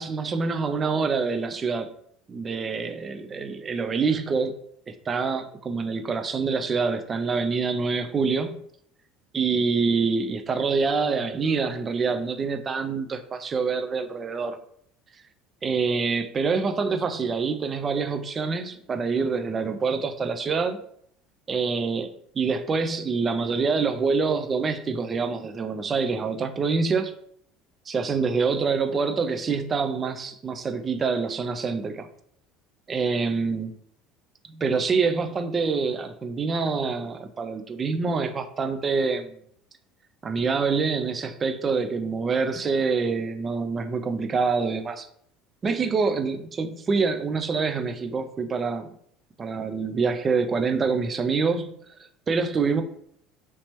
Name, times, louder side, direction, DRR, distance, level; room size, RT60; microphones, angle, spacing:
voice 1, 0.0-1.9 2.3-4.6 4.9-8.5 9.3-14.6 15.6-20.8 21.5-27.1 27.9-32.1 32.9-33.7 34.5-39.4 40.2-45.1 45.6-48.9 49.4-51.7 52.0-52.8, right 4 dB, 30° right, 9 dB, 0.4 m, -26 dB
3.1 x 2.8 x 3.0 m, 0.68 s
supercardioid pair, 95°, 0 cm